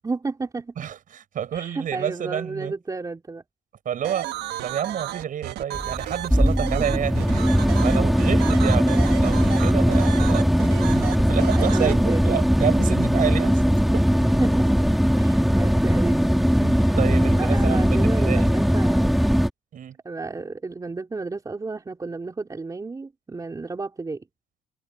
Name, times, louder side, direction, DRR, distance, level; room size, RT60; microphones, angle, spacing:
voice 1, 0.0-0.7 1.5-3.4 8.4-8.5 11.6-12.4 14.4-14.8 15.2-16.3 16.8-17.0 17.3-19.2 20.0-24.3, right 3 dB, 20° right, 4.0 m, -32 dB
voice 2, 0.8-2.7 3.9-4.3 4.6-7.4 7.8-10.5 10.9-14.0 16.6-18.5 19.7-20.0, right 9 dB, 50° right, 7.0 m, -29 dB
sound 1, 4.0-11.9, right 14 dB, 80° right, 1.6 m, -33 dB
sound 2, 5.7-19.5, equal, ahead, 2.4 m, -20 dB
cardioid pair, 110°, 17 cm